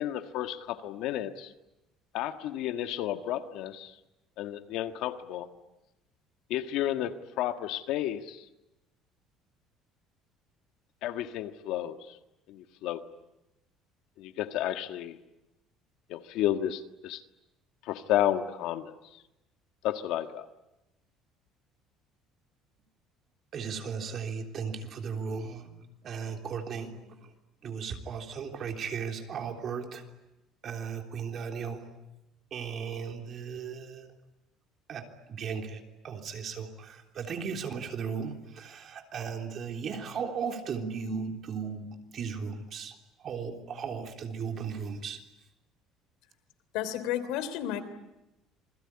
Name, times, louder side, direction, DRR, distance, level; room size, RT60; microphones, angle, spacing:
voice 1, 0.0-1.5 2.1-4.0 4.4-5.5 6.5-8.5 11.0-12.2 12.5-13.0 14.2-15.2 16.1-17.2 17.8-19.2 19.8-20.4, left 12 dB, 70° left, 8 dB, 1.6 m, -32 dB
voice 2, 23.5-27.3 27.6-30.0 30.6-31.9 32.5-34.1 34.9-41.9 42.1-45.2, right 6 dB, 40° right, 3 dB, 3.5 m, -36 dB
voice 3, 46.7-47.8, left 11 dB, 85° left, 12 dB, 3.2 m, -31 dB
28.0 x 22.0 x 9.8 m, 0.96 s
cardioid pair, 155°, 0 cm